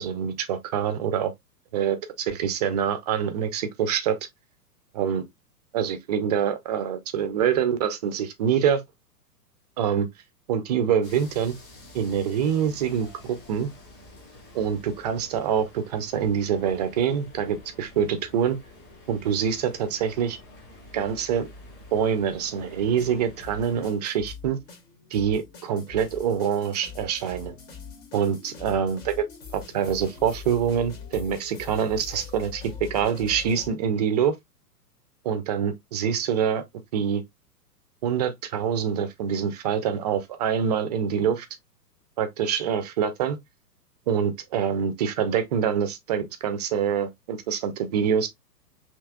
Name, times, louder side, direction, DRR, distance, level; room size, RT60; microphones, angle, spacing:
voice 1, 0.0-1.3 1.7-4.2 4.9-5.3 5.7-8.8 9.8-10.1 10.5-11.5 11.9-13.7 14.5-18.6 19.1-20.4 20.9-21.5 21.9-24.6 25.1-27.6 28.1-29.3 29.5-34.4 35.2-36.6 36.9-37.2 38.0-41.5 42.2-43.4 44.1-48.3, right 8 dB, 25° right, 0.5 m, -25 dB
sound 1, 11.0-23.9, left 1 dB, 20° left, 2.0 m, -48 dB
sound 2, 22.8-33.7, left 6 dB, 40° left, 1.1 m, -43 dB
5.5 x 2.8 x 2.2 m
figure-of-eight pair, 115°, 49 cm